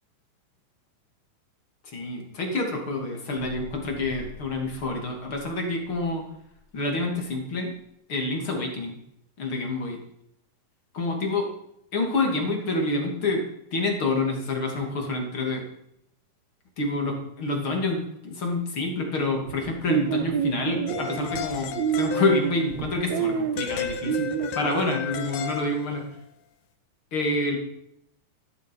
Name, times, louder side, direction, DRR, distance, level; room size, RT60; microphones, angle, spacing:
voice 1, 1.9-6.2 6.7-7.7 8.1-9.0 9.4-10.0 10.9-11.5 11.9-13.4 13.7-15.6 16.8-26.0 27.1-27.6, left 2 dB, 40° left, 2 dB, 3.1 m, -27 dB
sound 1, 3.3-7.1 7.7-7.8, left 2 dB, 40° right, 8.5 m, -47 dB
sound 2, 19.5-24.5, right 8 dB, 70° right, 1.8 m, -28 dB
sound 3, 20.9-22.9 23.6-26.1, left 8 dB, 65° left, 2.4 m, -34 dB
15.0 x 12.0 x 5.4 m, 0.77 s
omnidirectional pair, 4.0 m